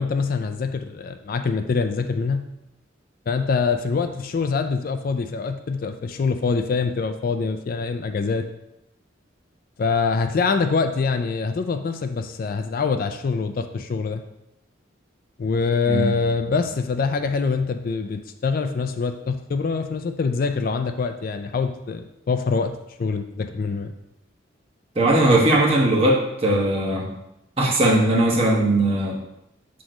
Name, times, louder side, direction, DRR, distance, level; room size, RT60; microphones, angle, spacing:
voice 1, 0.0-2.5 3.3-8.5 9.8-14.2 15.4-22.7 23.0-23.9, left 4 dB, 50° left, 8 dB, 0.3 m, -24 dB
voice 2, 24.9-27.1 27.6-29.2, right 1 dB, 30° right, -2 dB, 1.2 m, -19 dB
6.1 x 3.0 x 5.0 m, 0.86 s
head